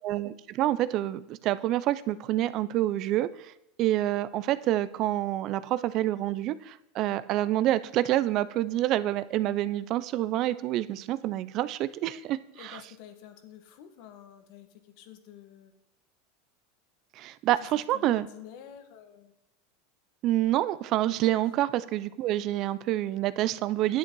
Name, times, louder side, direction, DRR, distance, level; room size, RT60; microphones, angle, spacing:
voice 1, 0.0-3.5 3.8-12.8 17.2-18.3 20.2-24.0, right 14 dB, 50° right, 16 dB, 0.5 m, -27 dB
voice 2, 12.5-15.7 17.6-19.4 21.4-21.5, left 10 dB, 60° left, 8 dB, 1.5 m, -49 dB
10.0 x 7.9 x 4.6 m, 0.89 s
supercardioid pair, 120°, 0 cm